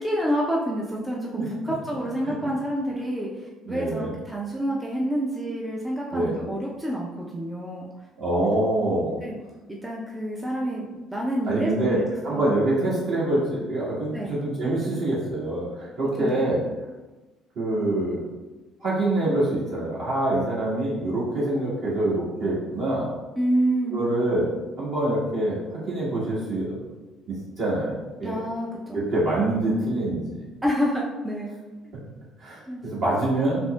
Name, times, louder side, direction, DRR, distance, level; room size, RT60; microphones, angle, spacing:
voice 1, 0.0-7.9 8.6-8.7 9.2-9.4 9.7-12.5 14.1-14.4 16.2-16.4 23.4-24.0 28.2-29.0 30.6-31.5 32.7-33.0, equal, 15° right, -3 dB, 0.6 m, -28 dB
voice 2, 3.6-4.1 6.1-6.3 8.2-9.1 11.5-12.0 12.2-16.6 17.5-18.2 18.8-23.1 23.9-24.5 24.8-25.6 25.9-26.8 27.3-28.4 28.9-30.4 32.4-33.6, right 1 dB, 55° right, -7 dB, 1.4 m, -25 dB
5.9 x 2.1 x 2.3 m, 1.2 s
figure-of-eight pair, 50°, 0 cm